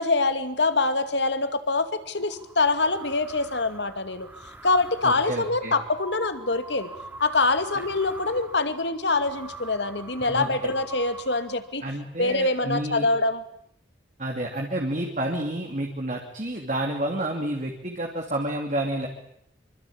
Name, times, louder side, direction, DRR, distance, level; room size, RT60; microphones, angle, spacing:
voice 1, 0.0-4.3 4.6-6.9 7.2-11.8 12.2-13.4, left 3 dB, 70° left, 10 dB, 2.5 m, -24 dB
sound 1, 2.2-11.9, right 2 dB, 10° right, 3.1 m, -43 dB
voice 2, 5.0-5.7 10.3-10.5 11.8-13.1 14.2-19.1, right 1 dB, 45° right, 2 dB, 2.9 m, -29 dB
26.0 x 24.5 x 8.8 m, 0.73 s
head